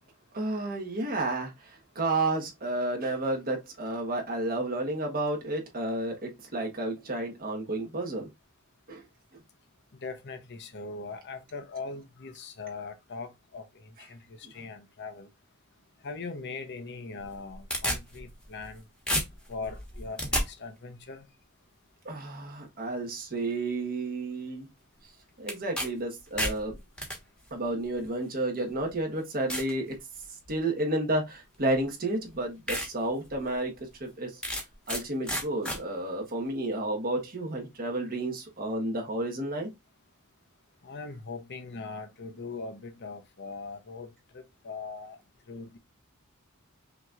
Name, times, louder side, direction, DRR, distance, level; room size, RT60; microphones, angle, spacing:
voice 1, 0.3-8.3 8.9-9.0 22.0-24.7 25.4-26.8 27.5-30.0 30.5-33.7 34.0-34.4 34.9-39.7, right 2 dB, 45° right, 1.3 m, -31 dB
voice 2, 9.9-15.3 16.0-18.9 19.5-21.4 40.8-45.2 45.4-45.8, left 4 dB, 55° left, 0.8 m, -41 dB
sound 1, 17.2-18.8 19.1-20.4 25.5-25.9 26.2-27.2 28.0-28.1 28.8-28.9 29.5-29.7 30.2-30.6 31.7-31.8 32.3-32.4 32.7-32.9 33.3-33.4 34.4-35.0 35.3-35.8, equal, 5° left, 1.2 m, -31 dB
5.8 x 2.9 x 2.4 m
head